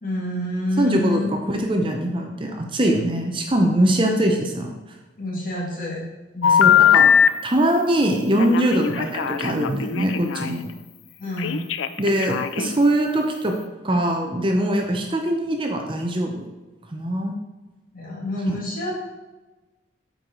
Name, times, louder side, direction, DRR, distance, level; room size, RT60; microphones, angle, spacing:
voice 1, 0.0-1.3 5.2-6.0 6.3-6.9 8.8-9.0 11.2-11.6 17.9-19.0, left 1 dB, 45° left, -3 dB, 2.0 m, -28 dB
voice 2, 0.8-4.7 6.5-7.1 7.4-10.7 12.0-13.6 13.8-16.5 16.9-17.3 18.5-18.6, right 1 dB, 25° right, 2 dB, 0.7 m, -22 dB
Telephone, 6.4-7.3 8.4-10.5 11.4-12.8, left 8 dB, 85° left, 0.4 m, -19 dB
8.6 x 4.7 x 3.9 m, 1.1 s
head